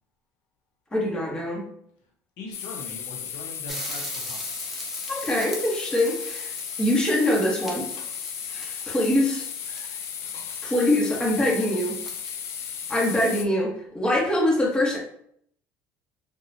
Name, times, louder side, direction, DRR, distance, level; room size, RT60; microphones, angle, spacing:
voice 1, 0.9-1.7 5.1-6.5 6.8-7.9 8.5-9.4 10.6-12.0 12.9-15.0, left 1 dB, 15° left, -4 dB, 1.3 m, -24 dB
voice 2, 2.4-4.4 9.6-10.0 12.0-12.1 14.0-14.2, left 2 dB, 75° left, 0 dB, 0.7 m, -42 dB
sound 1, 2.5-13.5, left 8 dB, 45° left, 0.3 m, -35 dB
sound 2, 3.7-13.4, right 1 dB, 5° right, 0.9 m, -41 dB
3.7 x 2.2 x 2.8 m, 0.67 s
supercardioid pair, 105°, 6 cm